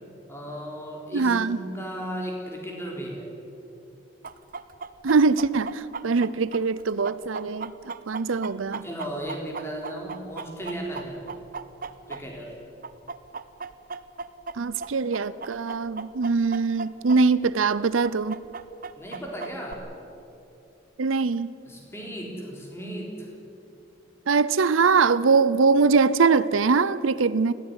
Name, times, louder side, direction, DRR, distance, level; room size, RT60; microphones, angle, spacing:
voice 1, 0.3-3.3 8.8-11.4 12.1-12.6 18.9-19.9 21.7-23.3, right 1 dB, 15° left, -1 dB, 3.8 m, -35 dB
voice 2, 1.1-1.6 5.0-8.9 14.6-18.4 21.0-21.5 24.3-27.5, right 4 dB, 90° right, 17 dB, 0.6 m, -22 dB
Chicken rooster, 4.2-12.5 12.8-17.2 17.4-17.5 18.0-19.7, right 4 dB, 45° right, 0.7 m, -37 dB
20.0 x 15.5 x 9.7 m, 2.8 s
head